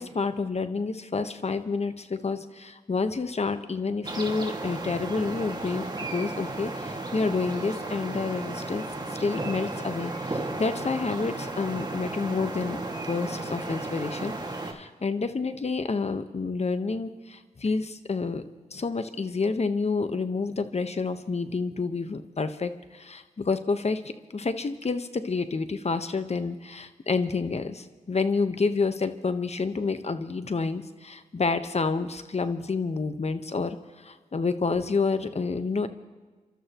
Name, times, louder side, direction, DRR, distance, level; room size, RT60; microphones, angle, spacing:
voice 1, 0.0-8.8 9.2-14.3 14.6-18.4 18.7-35.9, left 4 dB, 45° left, 10 dB, 1.2 m, -29 dB
sound 1, 4.0-14.7, right 2 dB, 30° right, 2.2 m, -34 dB
28.5 x 13.0 x 3.1 m, 1.3 s
cardioid pair, 45°, 15 cm